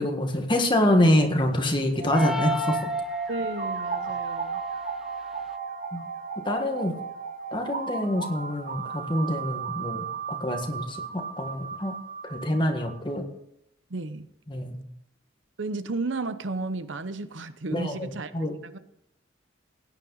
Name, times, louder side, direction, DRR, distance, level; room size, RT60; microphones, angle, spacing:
voice 1, 0.0-2.8 5.9-6.1 6.4-7.0 7.5-11.9 12.3-13.2 14.5-14.8 17.7-18.5, left 1 dB, 25° left, 1.6 m, -26 dB
sound 1, 2.0-12.9, right 4 dB, 45° right, 1.4 m, -33 dB
sound 2, 2.1-3.6, left 4 dB, ahead, 0.6 m, -34 dB
voice 2, 3.3-4.6 13.9-14.3 15.6-18.8, right 3 dB, 75° right, 0.8 m, -33 dB
17.0 x 9.7 x 4.0 m
head